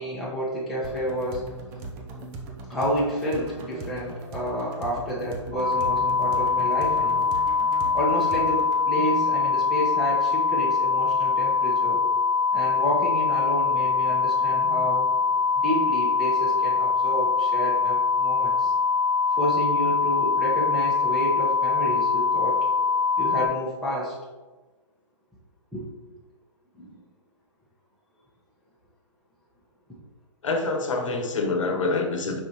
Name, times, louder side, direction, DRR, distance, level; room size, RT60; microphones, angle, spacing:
voice 1, 0.0-1.5 2.7-7.3 7.9-12.0 12.5-15.1 15.6-18.7 19.4-22.6 23.2-24.1 25.7-25.8 26.7-26.9, equal, ahead, -9 dB, 1.1 m, -30 dB
sound 1, 0.8-8.8, right 3 dB, 20° right, 0.6 m, -39 dB
sound 2, 5.5-23.5, left 5 dB, 45° right, 2.0 m, -23 dB
voice 2, 30.4-32.4, left 3 dB, 75° left, 3 dB, 1.2 m, -26 dB
6.8 x 5.4 x 3.0 m, 1.2 s
hypercardioid pair, 160°, 16 cm